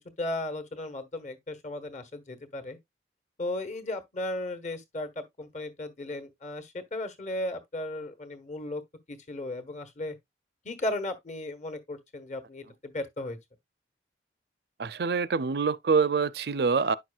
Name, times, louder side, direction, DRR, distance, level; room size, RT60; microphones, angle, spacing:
voice 1, 0.0-2.8 3.4-8.8 9.1-10.2 10.6-13.4, left 1 dB, 40° left, 1.3 m, -35 dB
voice 2, 14.8-16.9, right 5 dB, 60° right, 0.4 m, -25 dB
9.8 x 6.1 x 2.4 m
head